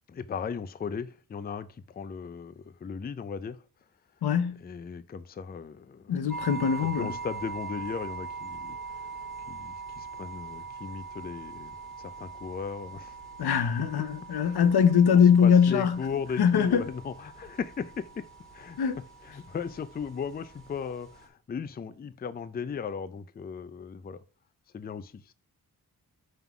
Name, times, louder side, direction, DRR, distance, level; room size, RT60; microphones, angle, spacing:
voice 1, 0.1-3.6 4.6-6.1 6.8-9.1 9.5-13.2 14.4-14.6 15.1-18.3 18.5-18.8 19.2-24.2 24.7-25.3, left 6 dB, 25° left, 0.4 m, -37 dB
voice 2, 4.2-4.6 6.1-7.1 13.4-16.0 16.4-16.9 18.8-19.0, left 7 dB, 85° left, 0.8 m, -22 dB
sound 1, 6.3-21.3, right 5 dB, ahead, 2.0 m, -42 dB
5.5 x 3.7 x 5.8 m
wide cardioid pair, 105°, 37 cm